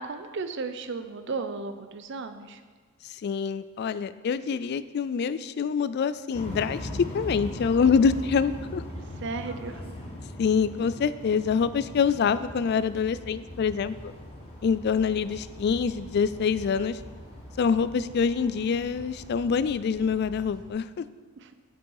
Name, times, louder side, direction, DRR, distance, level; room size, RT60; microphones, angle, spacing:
voice 1, 0.0-2.6 9.2-9.8 21.4-21.5, right 4 dB, 60° right, 9 dB, 0.6 m, -34 dB
voice 2, 3.0-8.8 10.4-14.1 14.6-17.0 17.6-21.1, left 6 dB, 50° left, 15 dB, 0.3 m, -25 dB
sound 1, 6.3-19.6, left 1 dB, 30° left, 1.4 m, -41 dB
sound 2, 13.5-20.7, right 1 dB, 20° right, 0.8 m, -48 dB
8.0 x 6.3 x 4.7 m, 1.4 s
head